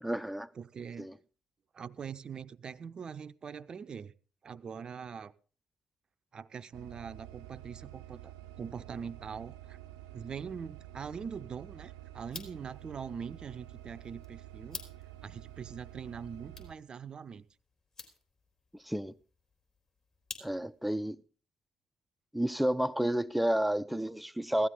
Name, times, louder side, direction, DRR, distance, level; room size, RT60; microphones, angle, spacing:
voice 1, 0.0-0.5 1.0-1.1 18.8-19.1 20.4-21.2 22.3-24.7, right 1 dB, 5° right, 0.6 m, -31 dB
voice 2, 0.5-1.1 1.7-4.1 4.4-5.3 6.3-9.8 10.1-14.8 15.2-17.5, right 6 dB, 45° right, 0.6 m, -43 dB
sound 1, 6.7-16.7, right 14 dB, 85° right, 0.7 m, -49 dB
sound 2, 12.2-20.9, left 3 dB, 40° left, 3.6 m, -52 dB
16.0 x 13.0 x 3.7 m
hypercardioid pair, 45°, 2 cm